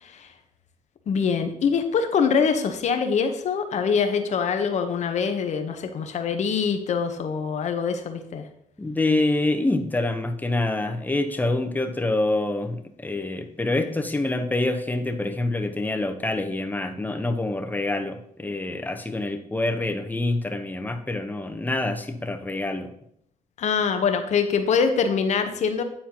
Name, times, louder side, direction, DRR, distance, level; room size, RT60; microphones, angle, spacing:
voice 1, 1.1-8.4 23.6-25.8, left 6 dB, 55° left, 7 dB, 0.8 m, -24 dB
voice 2, 8.8-22.9, left 2 dB, 10° left, 6 dB, 0.8 m, -26 dB
9.4 x 4.3 x 2.9 m, 0.70 s
supercardioid pair, 75°, 14 cm